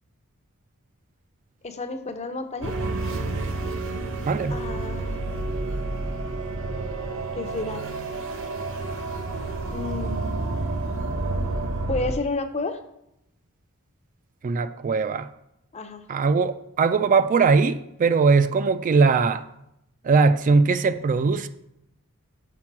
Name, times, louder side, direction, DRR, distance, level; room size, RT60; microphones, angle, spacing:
voice 1, 1.6-2.7 4.5-5.3 7.4-7.9 9.7-10.2 11.9-12.8 15.7-16.0, left 3 dB, 30° left, 9 dB, 0.6 m, -31 dB
sound 1, 2.6-12.1, right 2 dB, 60° right, 0.9 m, -29 dB
voice 2, 4.3-4.6 14.4-15.3 16.1-19.4 20.0-21.5, right 4 dB, 35° right, 11 dB, 0.3 m, -20 dB
6.0 x 5.2 x 5.9 m, 0.82 s
head